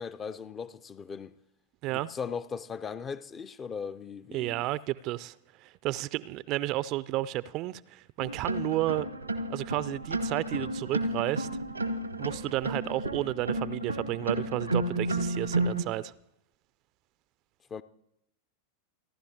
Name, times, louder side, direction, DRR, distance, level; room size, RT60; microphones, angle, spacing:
voice 1, 0.0-1.3 1.9-4.6 17.7-17.8, left 6 dB, 20° left, 0.5 m, -38 dB
voice 2, 4.3-5.3 5.6-9.1 9.5-11.5 12.2-16.1, right 16 dB, 40° right, 0.4 m, -32 dB
sound 1, 8.2-15.8, right 2 dB, 85° right, 0.9 m, -32 dB
29.0 x 11.5 x 2.8 m
figure-of-eight pair, 90°, 0 cm